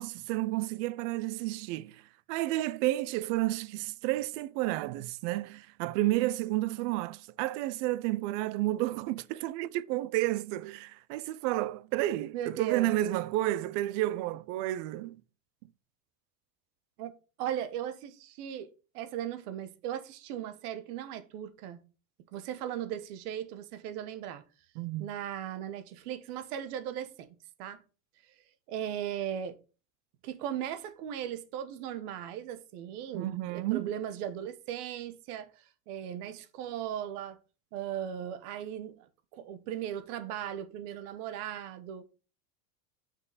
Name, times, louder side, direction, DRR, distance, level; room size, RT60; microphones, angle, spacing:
voice 1, 0.0-2.0 2.3-15.2 24.8-25.1 33.1-33.9, right 16 dB, 50° right, 0.5 m, -31 dB
voice 2, 12.3-12.9 17.0-17.1 17.4-21.8 22.3-24.4 25.0-27.3 27.6-27.8 28.7-29.6 30.2-37.4 37.7-39.1 39.3-42.0, right 10 dB, 65° right, 1.1 m, -37 dB
5.8 x 5.7 x 4.0 m
supercardioid pair, 145°, 48 cm